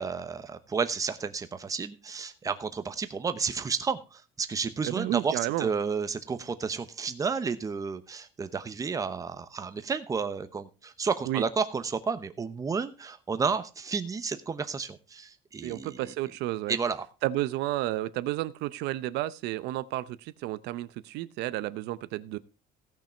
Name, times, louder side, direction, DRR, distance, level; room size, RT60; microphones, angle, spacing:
voice 1, 0.0-16.0 16.7-17.0, right 5 dB, 20° right, 11 dB, 0.9 m, -31 dB
voice 2, 4.8-5.7 11.3-11.4 15.6-16.8 17.2-22.4, right 15 dB, 75° right, 16 dB, 0.7 m, -31 dB
16.5 x 6.1 x 4.4 m, 0.32 s
cardioid pair, 155°, 18 cm